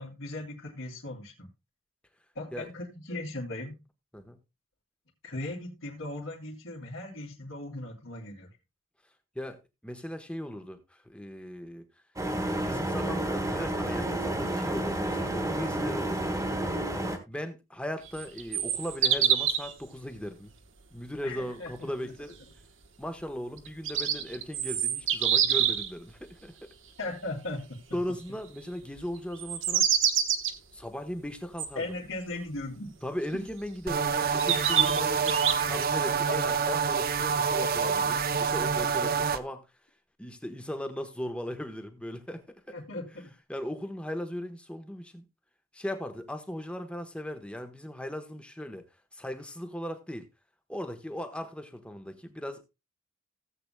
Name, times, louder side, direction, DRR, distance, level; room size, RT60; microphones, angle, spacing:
voice 1, 0.0-1.5 2.3-3.8 5.2-8.5 21.2-22.1 27.0-27.8 31.8-33.0 33.3-33.5 36.3-36.4 42.7-43.3, left 2 dB, 70° left, 2.9 m, -38 dB
voice 2, 9.3-11.9 12.7-16.4 17.3-20.5 20.9-22.4 23.0-26.7 27.9-29.9 30.7-32.0 33.0-35.4 35.7-39.7 40.2-42.8 43.5-45.2 45.7-48.8 49.1-50.3 50.7-52.6, equal, 5° left, 1.1 m, -38 dB
sound 1, 12.2-17.2, right 1 dB, 15° right, 1.5 m, -30 dB
sound 2, 18.1-19.7 23.6-25.9 29.3-30.5 31.6-31.7 33.5-33.6 34.4-35.8, right 9 dB, 65° right, 1.2 m, -26 dB
sound 3, 33.9-39.4, right 6 dB, 45° right, 0.6 m, -27 dB
17.0 x 7.9 x 2.2 m
head